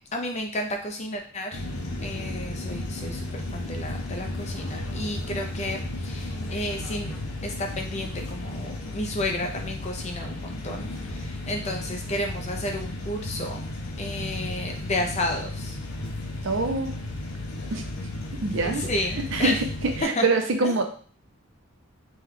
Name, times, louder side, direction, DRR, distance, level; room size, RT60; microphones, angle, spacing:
voice 1, 0.1-1.6 2.0-7.2 7.4-13.6 14.0-15.8 18.6-19.6 20.0-20.3 20.6-20.7, left 1 dB, 30° left, 3 dB, 0.5 m, -32 dB
sound 1, 1.5-20.0, left 1 dB, 85° left, 0.7 m, -34 dB
voice 2, 16.4-16.9 17.7-17.8 18.4-18.8 19.3-20.8, right 3 dB, 60° right, 4 dB, 0.5 m, -25 dB
3.2 x 2.3 x 3.5 m, 0.43 s
head